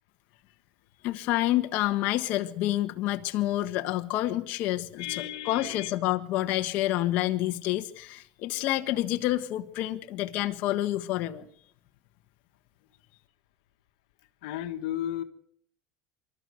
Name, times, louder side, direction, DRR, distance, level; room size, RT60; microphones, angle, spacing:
voice 1, 1.0-11.5, left 15 dB, 55° left, 6 dB, 1.5 m, -28 dB
voice 2, 5.0-5.9 14.4-15.2, left 12 dB, 85° left, 8 dB, 1.6 m, -34 dB
25.0 x 13.0 x 7.9 m, 0.65 s
cardioid pair, 140°, 3 cm